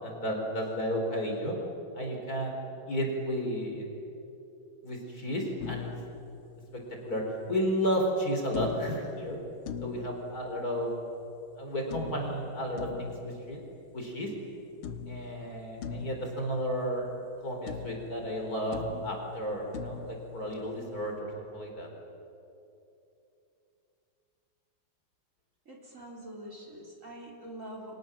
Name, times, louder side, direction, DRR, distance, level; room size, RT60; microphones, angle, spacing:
voice 1, 0.0-1.6 2.0-3.8 4.8-5.9 7.0-9.4 9.8-10.9 11.6-13.6 13.9-14.3 15.1-17.1 17.4-21.9, equal, 45° left, 1 dB, 5.1 m, -32 dB
sound 1, 5.6-7.1 8.5-11.2 11.9-14.5 14.8-17.4 17.7-21.1, left 7 dB, 75° left, 1.9 m, -43 dB
voice 2, 25.7-28.0, right 1 dB, 35° right, 0 dB, 4.2 m, -44 dB
29.5 x 25.5 x 7.5 m, 2.8 s
omnidirectional pair, 2.3 m